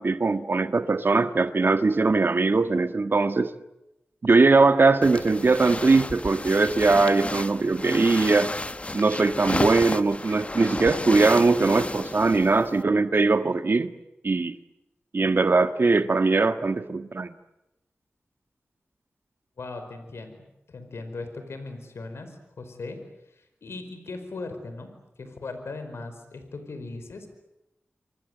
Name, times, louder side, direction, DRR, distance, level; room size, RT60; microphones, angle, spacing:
voice 1, 0.0-3.5 4.2-8.5 8.9-13.9 14.2-14.6 15.1-17.3, right 3 dB, 55° right, 9 dB, 1.5 m, -21 dB
sound 1, 5.0-12.8, left 2 dB, 30° left, 1.2 m, -32 dB
voice 2, 19.6-23.0 23.2-24.9 25.2-27.3, left 3 dB, 85° left, 8 dB, 4.9 m, -38 dB
27.5 x 26.0 x 8.0 m, 0.90 s
cardioid pair, 45°, 4 cm